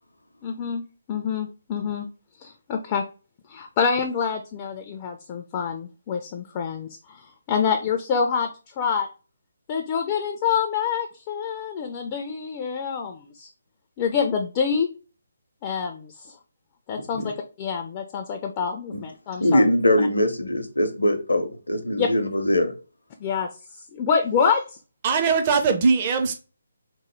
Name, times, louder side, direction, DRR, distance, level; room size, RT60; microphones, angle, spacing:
voice 1, 0.4-0.8 1.1-2.1 2.4-3.0 3.5-8.5 8.8-9.1 9.7-13.5 14.0-14.9 15.6-16.3 16.9-19.6 22.0-22.1 23.2-23.5 23.9-24.8, left 6 dB, 25° left, 0.3 m, -26 dB
voice 2, 19.4-22.7, left 1 dB, 75° left, 0.6 m, -22 dB
voice 3, 25.0-26.4, right 5 dB, 30° right, 0.5 m, -20 dB
2.9 x 2.0 x 3.0 m
figure-of-eight pair, 145°, 0 cm